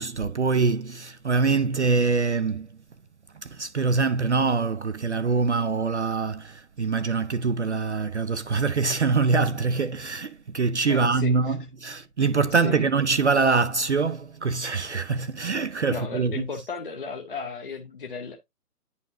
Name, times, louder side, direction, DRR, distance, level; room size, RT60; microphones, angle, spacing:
voice 1, 0.0-2.7 3.4-16.5, right 4 dB, 50° right, 0.5 m, -24 dB
voice 2, 10.9-11.6 12.5-12.9 15.9-18.4, left 4 dB, 35° left, 0.6 m, -35 dB
9.6 x 4.6 x 2.5 m
figure-of-eight pair, 150°, 46 cm